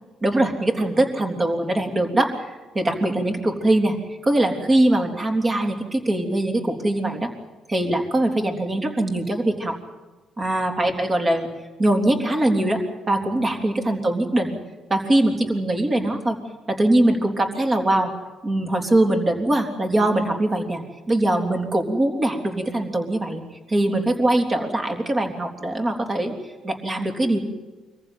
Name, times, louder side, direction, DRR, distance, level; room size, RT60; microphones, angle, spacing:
voice 1, 0.2-4.0 4.2-7.3 7.7-9.7 10.4-11.5 11.8-12.8 13.1-14.6 14.9-16.4 16.7-18.1 18.4-23.4 23.7-26.3 26.6-27.4, right 1 dB, 30° right, 4 dB, 3.7 m, -22 dB
24.5 x 15.0 x 9.6 m, 1.2 s
cardioid pair, 110°, 0 cm